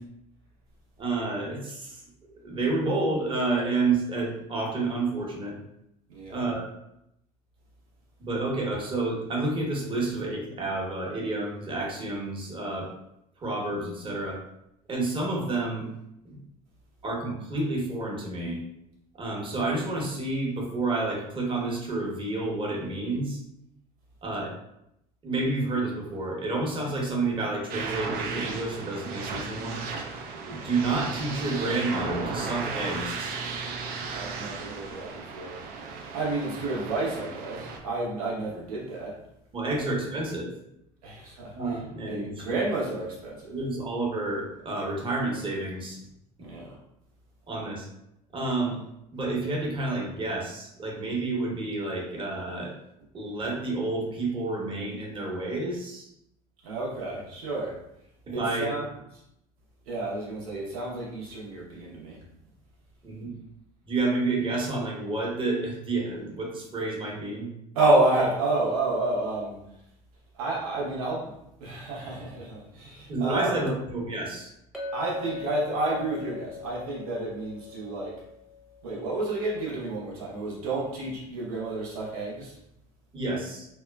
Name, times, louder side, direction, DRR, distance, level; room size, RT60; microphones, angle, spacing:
voice 1, 1.0-2.0 2.4-5.6 6.3-6.6 8.2-12.9 13.4-14.4 14.9-15.9 16.2-16.4 17.0-18.6 19.1-23.4 24.2-24.5 25.2-29.8 30.5-33.4 39.5-40.5 41.5-42.6 43.5-46.0 47.5-47.9 48.3-48.8 49.1-52.7 53.1-56.1 58.3-58.7 63.0-63.3 63.9-67.5 73.1-74.5 83.1-83.7, right 2 dB, 30° right, -2 dB, 0.9 m, -29 dB
voice 2, 6.1-6.5 34.1-35.6 36.1-39.2 39.7-39.9 41.0-43.5 46.4-46.8 56.6-57.8 58.3-58.9 59.9-62.2 67.7-69.6 70.3-71.3 71.6-73.7 74.9-78.2 78.8-82.6, right 2 dB, 80° right, -4 dB, 0.8 m, -30 dB
sound 1, 27.7-37.8, right 4 dB, 55° right, 0.5 m, -35 dB
Chink clink, 74.7-79.2, left 6 dB, ahead, 0.8 m, -40 dB
2.8 x 2.2 x 2.2 m, 0.80 s
hypercardioid pair, 75°, 18 cm